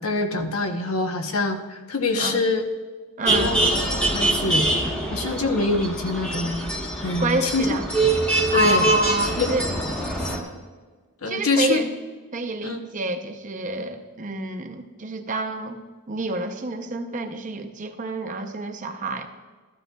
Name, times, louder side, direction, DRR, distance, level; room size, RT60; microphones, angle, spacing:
voice 1, 0.0-2.6 3.3-3.6 4.0-4.7 5.1-7.8 8.5-9.0 9.4-9.5 10.2-10.3 11.2-11.8 12.6-12.8, left 3 dB, 70° left, 6 dB, 0.9 m, -25 dB
voice 2, 3.2-3.5 7.2-7.9 8.5-9.7 11.3-11.9 12.3-15.8 16.1-19.3, right 2 dB, 35° right, 6 dB, 0.6 m, -27 dB
sound 1, 3.3-10.4, right 2 dB, 5° left, 1.1 m, -24 dB
13.5 x 11.5 x 2.3 m, 1.4 s
head